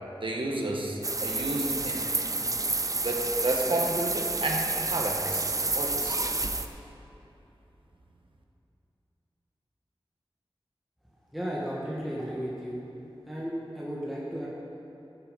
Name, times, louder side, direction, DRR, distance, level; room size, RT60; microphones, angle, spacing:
voice 1, 0.2-2.1 3.0-5.5 5.7-6.2, right 2 dB, 60° right, 0 dB, 1.5 m, -31 dB
sound 1, 1.0-6.7, right 2 dB, 35° right, 0.6 m, -29 dB
voice 2, 11.3-12.8 13.3-14.5, equal, ahead, -7 dB, 1.8 m, -34 dB
14.5 x 7.2 x 5.4 m, 2.9 s
wide cardioid pair, 55°, 10 cm